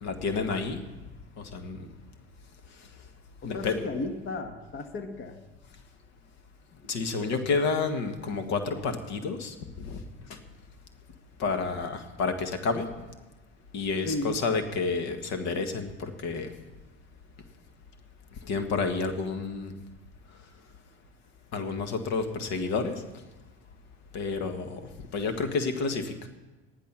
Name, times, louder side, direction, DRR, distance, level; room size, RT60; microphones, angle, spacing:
voice 1, 0.0-0.8 1.4-1.9 3.4-3.8 6.9-9.6 9.8-10.0 10.3-10.4 11.4-12.9 13.7-16.5 18.4-19.7 21.5-23.0 24.1-26.1, left 4 dB, 55° left, 7 dB, 1.7 m, -30 dB
voice 2, 3.4-5.4 14.0-14.4, left 2 dB, 40° left, 6 dB, 1.5 m, -34 dB
14.0 x 10.5 x 6.0 m, 1.2 s
hypercardioid pair, 85°, 32 cm